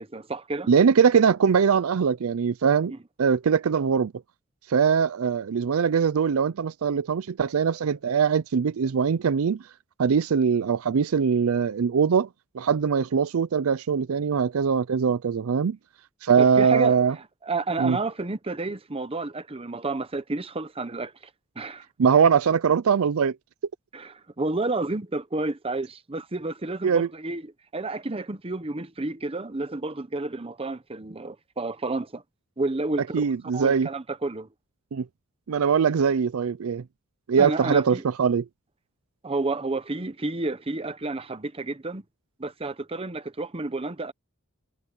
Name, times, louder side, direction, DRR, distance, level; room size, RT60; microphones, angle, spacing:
voice 1, 0.0-0.7 2.9-3.0 16.4-21.1 21.6-21.9 23.9-32.2 32.6-34.5 37.4-38.0 39.2-42.0 42.4-44.1, right 2 dB, 25° right, 0.9 m, -31 dB
voice 2, 0.7-2.9 3.2-4.1 4.7-9.6 10.0-12.3 12.5-15.8 16.2-17.1 17.8-18.0 22.0-23.4 26.8-27.1 33.1-33.9 34.9-35.0 35.5-36.8 37.3-38.4, right 6 dB, 75° right, 0.4 m, -22 dB
head